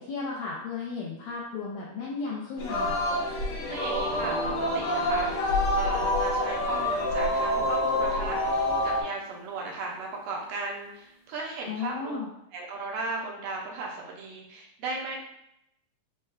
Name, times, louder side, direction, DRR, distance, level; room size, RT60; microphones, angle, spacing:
voice 1, 0.0-3.0 11.7-12.3, left 4 dB, 85° left, -5 dB, 1.6 m, -34 dB
Singing, 2.6-9.0, left 1 dB, 65° left, 1.8 m, -27 dB
voice 2, 3.7-5.3 5.7-12.2 12.5-15.2, right 3 dB, 90° right, -1 dB, 2.4 m, -36 dB
sound 1, 4.1-10.6, right 1 dB, 75° right, 1.2 m, -44 dB
6.5 x 2.2 x 2.3 m, 0.79 s
omnidirectional pair, 3.9 m